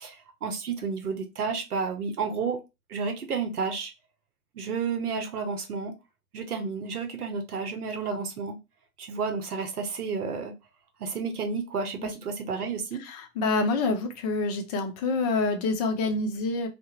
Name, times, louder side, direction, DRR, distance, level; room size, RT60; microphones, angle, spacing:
voice 1, 0.0-2.6 2.9-3.9 4.5-5.9 6.3-8.6 9.0-10.5 11.0-13.0, right 5 dB, 85° right, 0.7 m, -31 dB
voice 2, 13.0-16.7, left 3 dB, 30° left, 0.5 m, -27 dB
2.3 x 2.1 x 2.8 m
hypercardioid pair, 110°, 44 cm